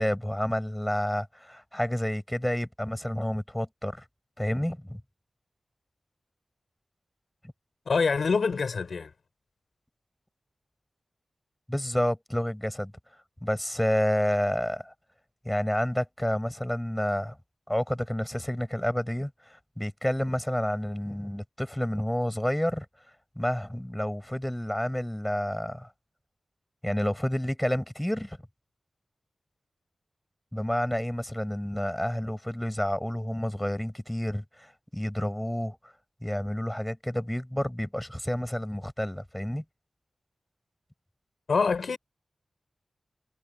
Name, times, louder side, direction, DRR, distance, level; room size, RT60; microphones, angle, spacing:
voice 1, 0.0-4.0 4.4-5.0 11.7-12.9 13.4-14.9 15.4-17.4 17.7-22.9 23.4-25.9 26.8-28.4 30.5-35.8 36.2-39.6, equal, 5° left, 7.5 m, -29 dB
voice 2, 7.9-9.1 41.5-42.0, left 5 dB, 75° left, 4.3 m, -25 dB
wide cardioid pair, 90°, 0 cm